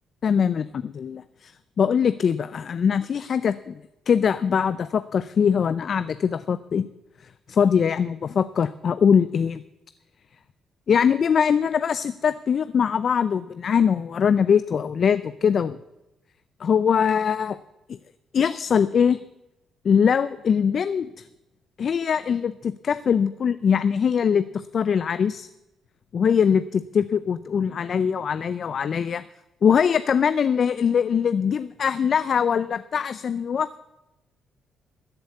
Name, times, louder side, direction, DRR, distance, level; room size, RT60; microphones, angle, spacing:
voice 1, 0.2-3.8 4.1-6.8 7.2-9.6 10.9-15.8 16.6-17.6 17.9-18.0 18.3-19.2 19.8-21.3 21.8-25.5 26.1-29.2 29.6-33.8, left 7 dB, 50° left, 15 dB, 0.4 m, -22 dB
14.0 x 7.9 x 8.3 m, 0.94 s
cardioid pair, 90°, 0 cm